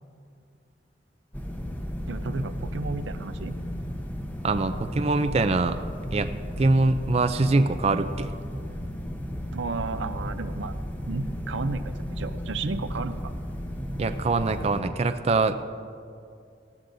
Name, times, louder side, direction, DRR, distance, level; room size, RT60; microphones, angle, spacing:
sound 1, 1.3-14.8, equal, 10° left, 0.9 m, -34 dB
voice 1, 2.1-3.6 9.5-10.8 11.0-13.3, right 3 dB, 90° right, 10 dB, 0.6 m, -33 dB
voice 2, 4.4-5.8 6.1-8.3 14.0-15.6, right 3 dB, 35° right, 10 dB, 0.4 m, -24 dB
19.0 x 15.0 x 2.7 m, 2.4 s
head